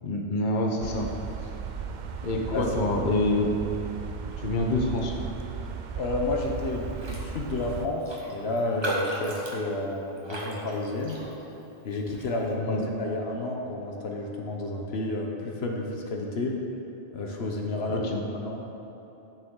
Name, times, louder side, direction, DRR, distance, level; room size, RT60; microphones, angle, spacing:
voice 1, 0.0-1.1 2.2-3.5 4.4-5.1 12.5-12.8 17.9-18.2, left 2 dB, 50° left, 0 dB, 1.0 m, -26 dB
sound 1, 0.8-7.9, right 6 dB, 55° right, 0.6 m, -36 dB
voice 2, 5.9-11.2 11.8-16.6 17.1-18.1 18.3-18.6, left 2 dB, 70° left, 0 dB, 1.1 m, -31 dB
Raindrop, 7.0-7.3 7.6-7.7 8.0-11.6 12.1-12.3, right 1 dB, 25° right, 1.1 m, -35 dB
12.0 x 6.6 x 3.7 m, 3.0 s
omnidirectional pair, 1.1 m